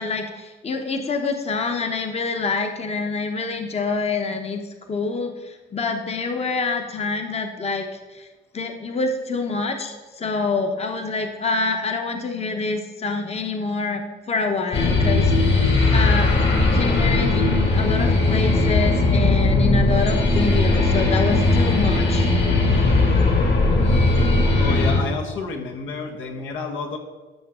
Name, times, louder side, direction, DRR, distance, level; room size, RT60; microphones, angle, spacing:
voice 1, 0.0-4.6 4.9-7.9 8.1-8.3 8.5-14.0 14.3-15.6 15.9-22.3, left 4 dB, 30° left, 4 dB, 1.0 m, -26 dB
sound 1, 14.7-25.0, left 2 dB, 60° left, 2.5 m, -18 dB
voice 2, 24.6-27.0, left 4 dB, 80° left, 1 dB, 1.5 m, -30 dB
13.0 x 6.0 x 3.7 m, 1.2 s
cardioid pair, 90°, 20 cm